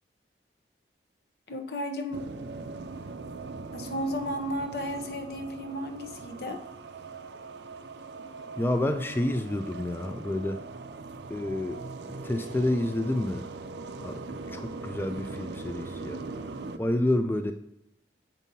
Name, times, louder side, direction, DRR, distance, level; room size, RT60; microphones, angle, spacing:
voice 1, 1.5-2.3 3.7-6.6, equal, 60° left, 6 dB, 0.8 m, -33 dB
sound 1, 2.1-16.8, right 3 dB, 75° right, 0.5 m, -41 dB
voice 2, 8.6-10.6 11.3-11.8 12.2-13.5 14.0-14.2 14.5-16.2 16.8-17.5, left 1 dB, 10° left, 7 dB, 0.3 m, -29 dB
7.3 x 5.4 x 2.7 m, 0.85 s
head